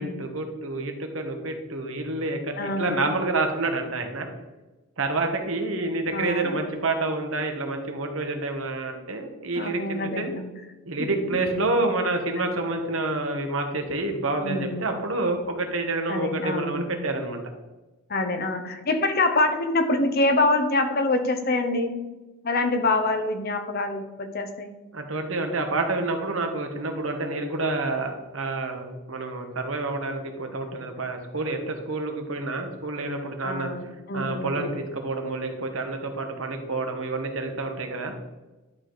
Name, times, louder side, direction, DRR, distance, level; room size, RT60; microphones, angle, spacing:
voice 1, 0.0-4.3 5.0-10.3 10.9-17.4 24.9-33.7 34.1-38.1, right 2 dB, 75° right, 4 dB, 1.3 m, -28 dB
voice 2, 2.6-3.1 6.1-6.6 9.5-10.5 11.0-11.8 12.4-12.6 14.4-14.9 16.1-16.9 18.1-22.1 22.4-24.7 33.4-34.8, left 2 dB, 45° left, 7 dB, 0.9 m, -26 dB
11.0 x 4.9 x 4.0 m, 1.1 s
head